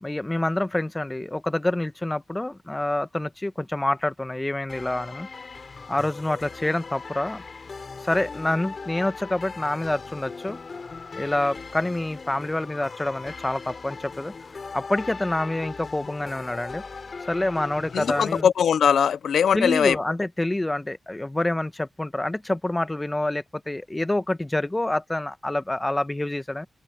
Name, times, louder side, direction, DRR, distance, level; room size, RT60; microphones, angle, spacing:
voice 1, 0.0-5.3 5.9-7.4 8.0-10.6 11.2-14.3 14.7-16.8 17.3-18.5 19.5-26.7, left 1 dB, 20° left, 1.2 m, -27 dB
sound 1, 4.7-18.4, left 4 dB, 55° left, 6.0 m, -39 dB
voice 2, 17.9-20.0, left 8 dB, 85° left, 0.4 m, -21 dB
open air
cardioid pair, 55°, 0 cm